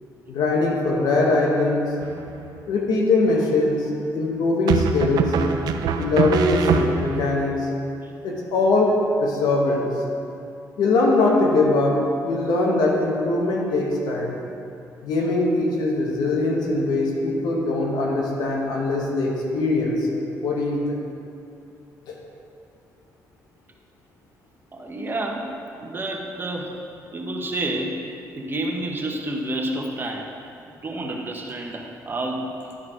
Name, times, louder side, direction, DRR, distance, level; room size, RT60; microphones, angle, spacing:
voice 1, 0.3-1.9 2.7-3.9 4.1-5.3 5.9-7.7 8.2-8.9 9.2-9.9 10.8-14.4 15.0-21.0 22.1-22.2, left 2 dB, 80° left, -1 dB, 1.5 m, -21 dB
sound 1, 2.0-2.6 4.7-7.3, right 5 dB, 75° right, 0.5 m, -24 dB
voice 2, 24.7-25.5 25.8-26.7 27.1-28.0 28.4-30.3 30.8-32.5, right 1 dB, 30° right, 1 dB, 1.2 m, -29 dB
11.5 x 4.7 x 5.0 m, 2.6 s
cardioid pair, 80°, 7 cm